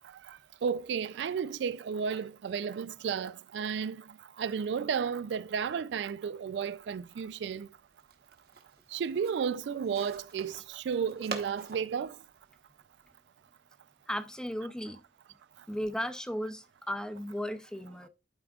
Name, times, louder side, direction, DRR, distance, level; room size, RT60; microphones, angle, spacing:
voice 1, 0.3-4.0 4.4-7.7 8.9-12.2, right 6 dB, 80° right, 0.3 m, -33 dB
sound 1, 7.6-13.2, right 4 dB, 55° right, 1.1 m, -46 dB
voice 2, 14.1-15.0 15.7-18.1, equal, 5° left, 0.5 m, -35 dB
11.5 x 4.8 x 2.4 m
head